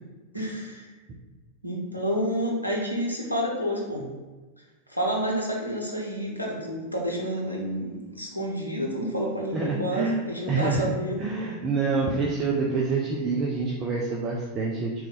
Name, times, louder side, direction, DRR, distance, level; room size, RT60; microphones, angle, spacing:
voice 1, 0.3-0.9 1.6-4.1 4.9-11.3, equal, 90° right, -2 dB, 0.8 m, -29 dB
voice 2, 9.5-10.2 10.5-10.9 11.2-15.1, right 4 dB, 25° right, -3 dB, 0.5 m, -27 dB
3.5 x 3.0 x 3.9 m, 1.3 s
figure-of-eight pair, 90°, 0 cm